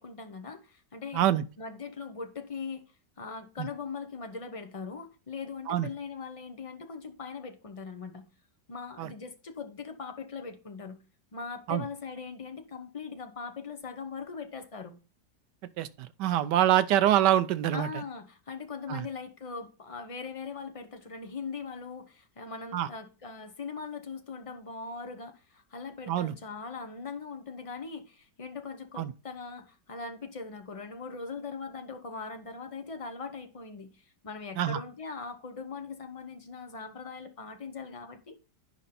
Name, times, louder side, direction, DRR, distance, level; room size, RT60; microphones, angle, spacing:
voice 1, 0.0-1.2 1.6-2.8 3.2-8.3 8.7-11.0 11.3-15.0 17.7-38.3, left 5 dB, 60° left, 0.3 m, -40 dB
voice 2, 16.2-17.9 18.9-19.1 22.7-22.9 26.1-26.3 29.0-29.1 34.6-34.8, right 12 dB, 80° right, 1.2 m, -25 dB
10.0 x 5.2 x 4.2 m
omnidirectional pair, 1.9 m